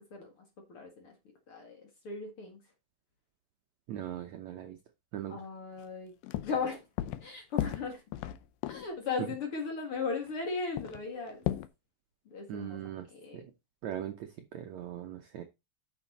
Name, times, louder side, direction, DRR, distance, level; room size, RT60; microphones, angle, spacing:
voice 1, 0.1-1.1 1.5-2.6 5.3-6.1 6.4-6.9 7.2-8.0 8.7-11.4 12.3-12.8 13.1-13.4, left 4 dB, 45° left, 2.2 m, -37 dB
voice 2, 3.9-4.8 5.1-5.4 12.5-13.1 13.3-13.5 13.8-15.4, right 11 dB, 75° right, 1.7 m, -40 dB
sound 1, 5.8-5.9 6.2-6.7 7.0-7.3 7.6-9.0 9.9-10.0 10.2-10.3 10.8-11.7, left 13 dB, 80° left, 2.5 m, -35 dB
9.1 x 6.3 x 4.2 m
omnidirectional pair, 4.3 m